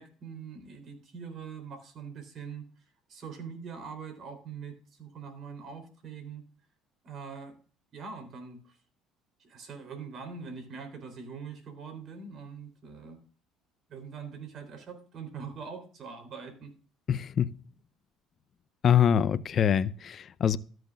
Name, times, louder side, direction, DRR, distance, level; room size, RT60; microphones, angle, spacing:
voice 1, 0.0-6.4 7.0-7.6 7.9-8.8 9.4-13.2 13.9-16.7, right 6 dB, 55° right, 3.7 m, -43 dB
voice 2, 17.1-17.5 18.8-20.6, left 9 dB, 50° left, 0.6 m, -24 dB
13.5 x 7.7 x 2.5 m
supercardioid pair, 75°, 0 cm